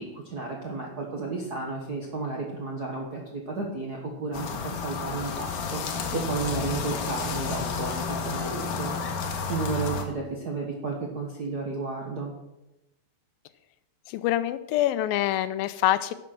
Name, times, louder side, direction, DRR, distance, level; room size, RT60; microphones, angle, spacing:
voice 1, 0.0-12.3, right 3 dB, 60° right, -1 dB, 1.0 m, -33 dB
sound 1, 4.3-10.1, left 5 dB, 70° left, 2.7 m, -31 dB
voice 2, 14.1-16.1, left 13 dB, 85° left, 13 dB, 2.4 m, -25 dB
11.5 x 7.3 x 6.1 m, 0.93 s
omnidirectional pair, 4.1 m